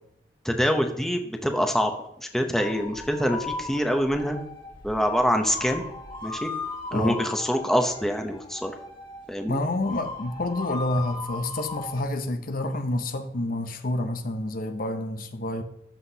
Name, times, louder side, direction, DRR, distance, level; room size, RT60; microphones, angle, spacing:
voice 1, 0.4-1.9 2.2-4.4 4.8-5.8 6.2-6.5 6.9-8.7 9.3-9.6, equal, ahead, 0.8 m, -25 dB
sound 1, 2.5-12.0, left 3 dB, 30° left, 1.8 m, -38 dB
voice 2, 9.5-15.6, left 1 dB, 55° left, 0.7 m, -28 dB
13.5 x 5.9 x 2.8 m
head